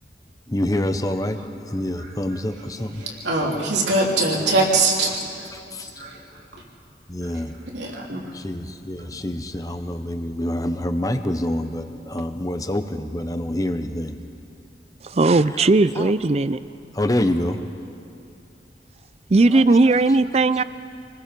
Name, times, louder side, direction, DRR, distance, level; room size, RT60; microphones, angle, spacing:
voice 1, 0.5-1.4 1.7-2.9 7.1-7.5 8.4-14.1 15.5-15.7 16.0-16.1 17.0-17.6 19.5-19.6, left 1 dB, 20° left, 8 dB, 0.8 m, -26 dB
voice 2, 3.0-5.2 5.8-6.2 7.2-7.3 7.7-8.3, right 2 dB, 80° right, -2 dB, 3.2 m, -22 dB
voice 3, 15.0-16.6 19.3-20.6, right 3 dB, 35° right, 15 dB, 0.5 m, -17 dB
27.5 x 20.0 x 5.2 m, 2.6 s
head